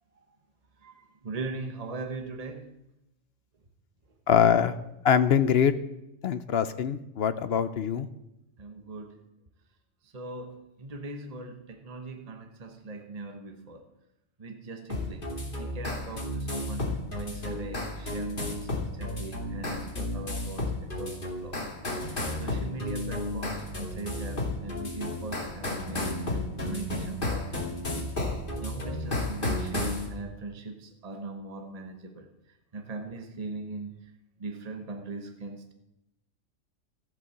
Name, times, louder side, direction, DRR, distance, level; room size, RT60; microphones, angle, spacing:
voice 1, 0.8-2.7 8.6-9.2 10.0-13.9 14.4-21.6 22.3-28.1 28.6-34.1 34.4-35.7, right 3 dB, 30° right, 5 dB, 1.1 m, -40 dB
voice 2, 4.3-4.7 5.0-5.7 6.2-8.1, left 8 dB, 60° left, 12 dB, 0.8 m, -23 dB
sound 1, 14.9-30.1, left 2 dB, 40° left, 2.6 m, -33 dB
14.5 x 8.7 x 6.8 m, 0.88 s
omnidirectional pair, 1.3 m